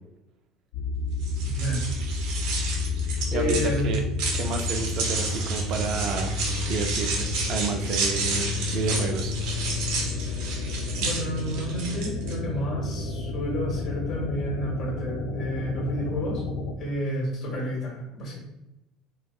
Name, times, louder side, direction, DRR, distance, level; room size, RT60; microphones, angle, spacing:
sound 1, 0.7-16.7, left 3 dB, 80° left, 0.3 m, -30 dB
sound 2, 1.2-12.3, right 4 dB, 75° right, 0.7 m, -32 dB
voice 1, 1.4-1.8 3.3-4.0 11.0-16.4 16.8-18.4, equal, 40° left, -4 dB, 1.4 m, -30 dB
voice 2, 3.3-4.0 4.3-6.3 6.7-9.3, right 4 dB, 45° right, 5 dB, 0.3 m, -30 dB
4.1 x 2.3 x 2.3 m, 0.93 s
cardioid pair, 165°, 0 cm